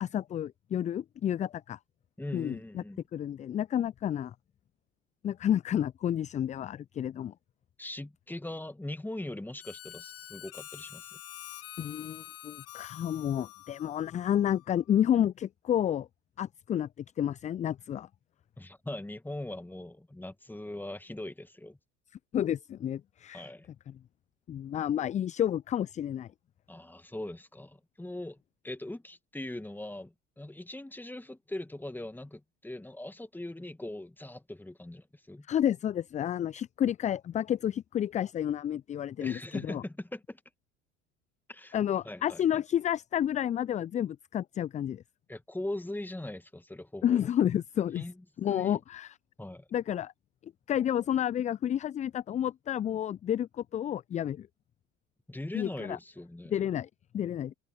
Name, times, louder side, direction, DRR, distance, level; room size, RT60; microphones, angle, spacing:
voice 1, 0.0-1.8 2.3-2.8 3.1-4.3 5.2-7.3 11.8-16.1 16.4-16.9 17.2-18.1 22.3-23.5 23.9-24.0 24.5-26.3 35.5-39.4 39.7-39.8 41.7-45.0 47.0-48.0 48.4-49.2 49.7-50.1 50.4-54.5 55.5-56.0 56.5-56.9 57.1-57.5, left 10 dB, 20° left, 0.4 m, -30 dB
voice 2, 2.2-3.0 7.8-11.2 18.6-21.8 23.3-23.7 26.7-35.5 39.2-40.4 41.5-41.8 42.0-42.6 45.3-47.3 47.9-48.2 48.5-48.8 49.4-49.7 55.3-56.7, left 1 dB, 5° left, 2.1 m, -41 dB
Harmonica, 9.6-14.8, left 13 dB, 40° left, 2.6 m, -47 dB
figure-of-eight pair, 65°, 36 cm